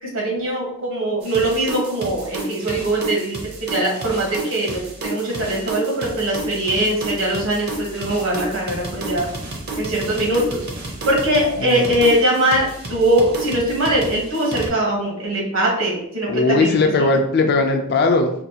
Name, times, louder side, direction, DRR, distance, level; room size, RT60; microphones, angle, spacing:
voice 1, 0.0-3.4 3.7-9.3 9.8-10.6 11.1-16.8, right 1 dB, 70° right, -2 dB, 1.3 m, -21 dB
sound 1, 1.2-14.7, right 2 dB, 50° right, 0.8 m, -31 dB
voice 2, 11.6-11.9 16.3-18.3, left 3 dB, 50° left, 5 dB, 0.4 m, -18 dB
4.4 x 2.4 x 2.8 m, 0.72 s
head